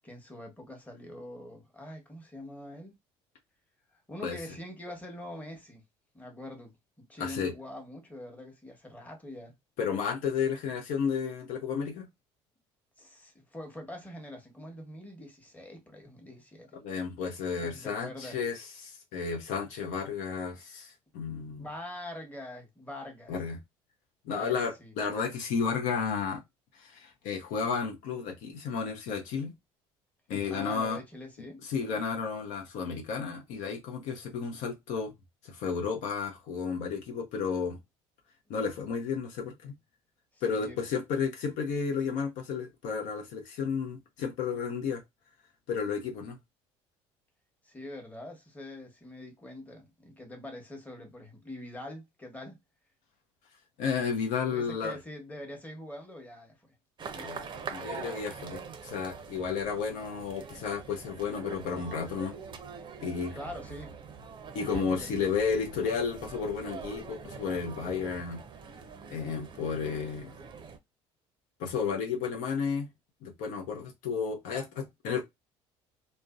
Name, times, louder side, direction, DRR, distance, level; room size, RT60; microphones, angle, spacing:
voice 1, 0.0-2.9 3.9-5.8 6.1-6.7 7.1-9.5 13.0-16.8 17.6-18.4 21.6-23.3 24.3-24.9 30.5-32.0 40.3-40.9 47.6-52.6 54.5-56.7 63.3-63.9 64.6-65.2 74.5-74.7, left 1 dB, 10° left, 1.0 m, -44 dB
voice 2, 7.2-7.5 9.8-12.1 16.8-21.7 23.3-23.6 24.3-26.4 26.8-29.5 30.3-31.0 31.7-35.1 35.4-37.8 38.5-39.8 40.4-45.0 45.7-46.4 53.8-55.0 57.1-62.4 63.0-63.4 64.5-68.4 69.1-70.4 71.6-72.9 73.2-75.2, left 6 dB, 70° left, 0.6 m, -32 dB
sound 1, 57.0-70.8, right 6 dB, 35° right, 0.5 m, -44 dB
2.5 x 2.1 x 2.3 m
supercardioid pair, 80°, 13 cm